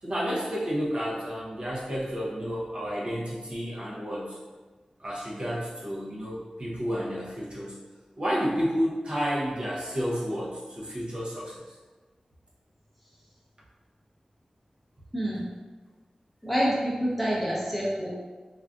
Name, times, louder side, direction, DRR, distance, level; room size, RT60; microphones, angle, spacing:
voice 1, 0.0-4.4 5.0-7.8 8.2-11.6, equal, 45° right, -6 dB, 0.6 m, -31 dB
voice 2, 16.4-18.1, equal, ahead, -7 dB, 0.7 m, -27 dB
3.6 x 2.4 x 2.3 m, 1.3 s
wide cardioid pair, 100°, 2 cm